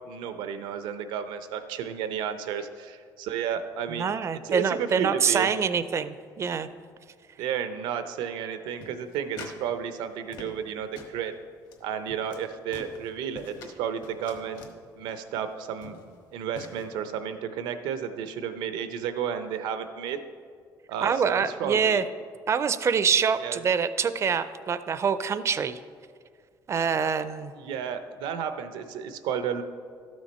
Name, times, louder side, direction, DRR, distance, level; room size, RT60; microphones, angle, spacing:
voice 1, 0.1-4.1 4.4-5.5 7.4-11.3 11.8-14.6 15.0-16.0 16.3-20.2 20.9-22.0 23.4-23.6 27.5-29.6, right 8 dB, 85° right, 10 dB, 0.7 m, -32 dB
voice 2, 3.9-6.7 21.0-22.0 22.5-25.8 26.7-27.5, right 6 dB, 35° right, 13 dB, 0.4 m, -25 dB
sound 1, 8.8-9.6 9.9-10.7 11.0-11.2 11.7-11.8 12.1-12.4 12.7-13.7 14.0-14.8 15.4-15.5 15.8-16.2 16.6-16.9, left 3 dB, 60° left, 1.4 m, -44 dB
12.0 x 6.3 x 4.2 m, 2.1 s
cardioid pair, 110°, 8 cm